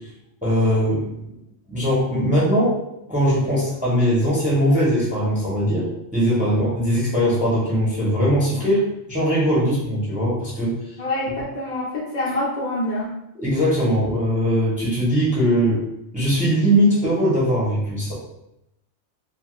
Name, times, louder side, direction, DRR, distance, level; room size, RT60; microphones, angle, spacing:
voice 1, 0.4-1.0 1.7-2.8 3.1-10.7 13.4-15.8 16.1-18.1, equal, 10° right, -7 dB, 0.7 m, -20 dB
voice 2, 11.0-13.1, left 1 dB, 45° left, -5 dB, 0.6 m, -26 dB
2.7 x 2.4 x 3.0 m, 0.84 s
omnidirectional pair, 1.2 m